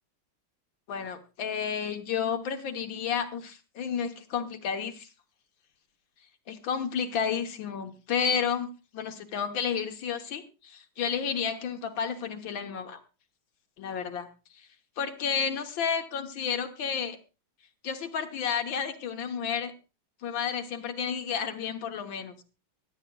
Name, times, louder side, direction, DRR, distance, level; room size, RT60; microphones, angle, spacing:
voice 1, 0.9-5.1 6.5-8.7 8.9-13.0 13.8-14.3 14.5-14.7 15.0-17.2 17.8-19.7 20.2-22.3, left 7 dB, 70° left, 6 dB, 1.8 m, -31 dB
23.5 x 9.0 x 2.3 m, 0.31 s
omnidirectional pair, 2.3 m